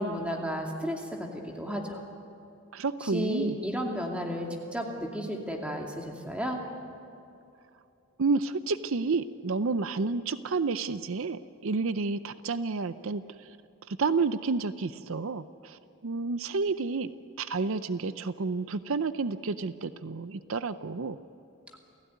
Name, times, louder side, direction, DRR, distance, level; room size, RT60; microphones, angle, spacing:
voice 1, 0.0-2.0 3.0-6.6, equal, 5° right, 0 dB, 2.5 m, -33 dB
voice 2, 2.7-3.5 8.2-13.6 13.9-17.1 17.4-21.2, right 4 dB, 70° right, 13 dB, 0.6 m, -30 dB
28.5 x 16.5 x 9.4 m, 2.7 s
head